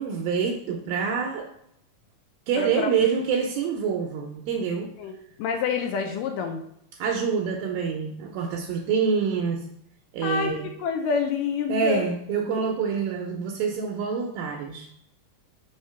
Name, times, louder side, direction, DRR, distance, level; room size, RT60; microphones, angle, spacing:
voice 1, 0.0-1.5 2.5-4.9 6.9-9.6 10.1-10.7 11.7-15.0, right 6 dB, 80° right, 2 dB, 2.2 m, -26 dB
voice 2, 2.6-2.9 5.0-6.6 10.2-12.1, left 6 dB, 85° left, 5 dB, 1.9 m, -28 dB
5.6 x 3.2 x 5.4 m, 0.74 s
omnidirectional pair, 4.4 m